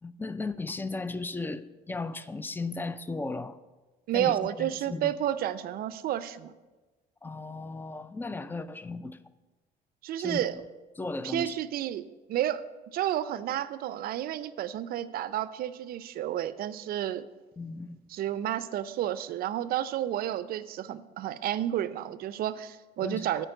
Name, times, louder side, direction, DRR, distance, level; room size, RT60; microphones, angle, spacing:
voice 1, 0.0-3.6 4.1-5.1 7.2-9.2 10.2-10.4 11.0-11.6 17.6-18.0 23.0-23.4, left 3 dB, 10° left, 0.4 m, -36 dB
voice 2, 4.1-6.5 10.0-10.6 11.2-12.6 12.9-17.2 18.1-23.5, right 12 dB, 60° right, 0.5 m, -31 dB
9.0 x 4.5 x 6.5 m
cardioid pair, 110°, 17 cm